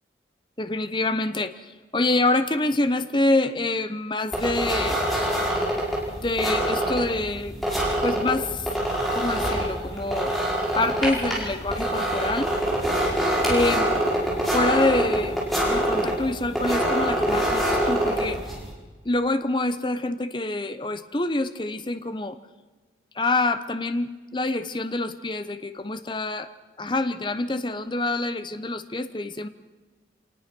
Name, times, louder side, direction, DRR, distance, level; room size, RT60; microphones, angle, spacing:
voice 1, 0.6-5.0 6.2-7.6 8.0-8.7 9.1-10.3 10.7-12.5 13.5-13.8 14.5-15.4 15.6-18.4 19.0-22.4 23.1-26.5 26.8-29.5, left 2 dB, 25° left, 10 dB, 0.9 m, -26 dB
sound 1, 4.3-18.7, right 1 dB, ahead, 5.4 m, -25 dB
26.0 x 19.0 x 6.2 m, 1.3 s
head